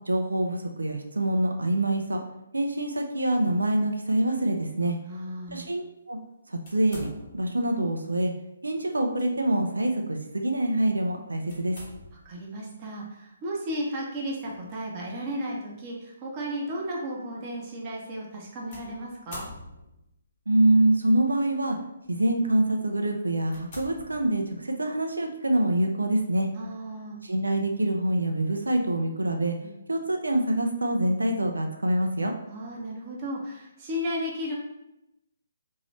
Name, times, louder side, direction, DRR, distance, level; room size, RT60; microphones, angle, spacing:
voice 1, 0.1-2.2 2.5-5.0 5.5-6.2 6.5-8.3 8.6-11.8 20.5-21.8 22.1-26.5 27.2-29.6 29.9-32.3, right 1 dB, 75° right, 3 dB, 0.5 m, -25 dB
voice 2, 5.1-5.7 12.2-19.5 26.5-27.2 29.6-29.8 32.5-34.5, equal, 30° right, -3 dB, 0.7 m, -34 dB
sound 1, 6.6-7.6 8.9-9.3 9.7-9.9 11.5-12.4 14.4-14.8 15.6-15.7 18.7-20.1 21.0-21.5 22.0-22.2 22.8-22.9 23.5-24.7, left 2 dB, 40° left, 1.2 m, -45 dB
2.9 x 2.7 x 3.1 m, 0.87 s
figure-of-eight pair, 135°, 0 cm